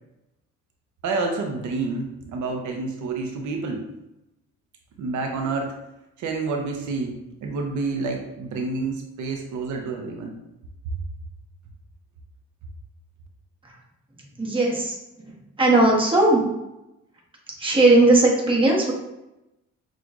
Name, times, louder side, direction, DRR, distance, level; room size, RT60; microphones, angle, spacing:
voice 1, 1.0-3.9 5.0-5.7 6.2-10.3, right 3 dB, 75° right, 3 dB, 0.7 m, -28 dB
voice 2, 14.4-14.9 15.6-16.4 17.6-18.9, right 2 dB, 15° right, -3 dB, 1.1 m, -17 dB
6.0 x 2.4 x 2.5 m, 0.92 s
cardioid pair, 90°, 30 cm